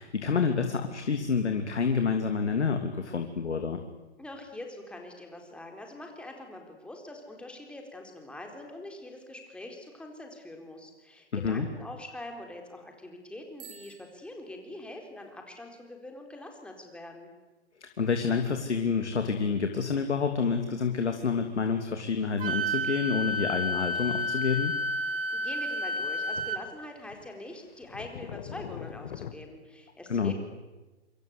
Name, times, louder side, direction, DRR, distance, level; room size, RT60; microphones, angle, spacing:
voice 1, 0.0-3.8 11.4-11.7 17.8-24.7 30.1-30.3, left 5 dB, 75° left, 5 dB, 3.0 m, -28 dB
voice 2, 4.2-17.3 25.3-30.3, left 1 dB, 5° left, 2 dB, 4.2 m, -44 dB
Bicycle bell, 13.5-15.3, right 8 dB, 35° right, 7.9 m, -53 dB
Wind instrument woodwind instrument, 22.4-26.6, left 1 dB, 50° right, 3.3 m, -30 dB
sound 1, 23.8-24.1 24.4-24.9 25.5-25.6 26.0-26.8 27.1-29.3, left 9 dB, 50° left, 2.1 m, -43 dB
27.0 x 25.5 x 8.3 m, 1.1 s
hypercardioid pair, 140°, 34 cm